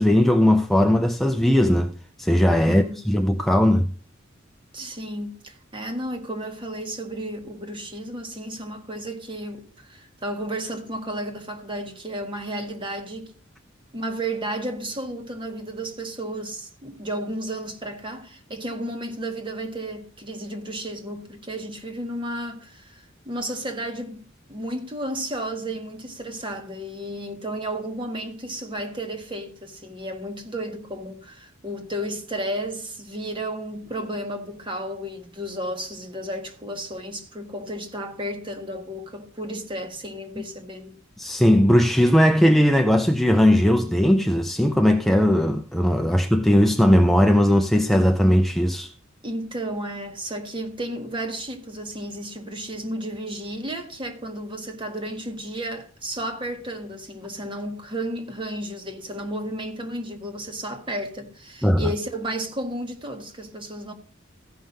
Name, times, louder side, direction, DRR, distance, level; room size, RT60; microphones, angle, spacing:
voice 1, 0.0-3.9 40.4-40.5 41.2-48.9 61.6-61.9, equal, ahead, 0.5 m, -18 dB
voice 2, 2.6-3.0 4.7-13.3 13.9-24.2 24.5-41.0 49.2-63.9, right 1 dB, 25° right, 1.5 m, -33 dB
14.5 x 5.6 x 5.4 m
head